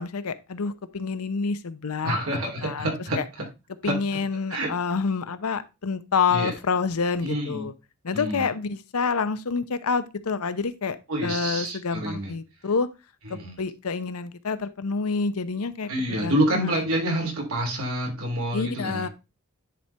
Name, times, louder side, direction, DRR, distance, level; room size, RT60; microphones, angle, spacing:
voice 1, 0.0-2.2 2.6-2.9 3.2-3.3 3.8-7.7 8.0-11.0 11.2-12.9 13.3-16.8 18.5-19.1, left 5 dB, 90° left, 0.7 m, -28 dB
voice 2, 2.0-3.2 3.8-3.9 4.5-4.7 6.3-6.5 7.2-7.7 8.1-8.5 11.1-12.3 13.2-13.5 15.9-19.1, right 1 dB, 75° right, 3.1 m, -27 dB
10.0 x 4.4 x 3.3 m
head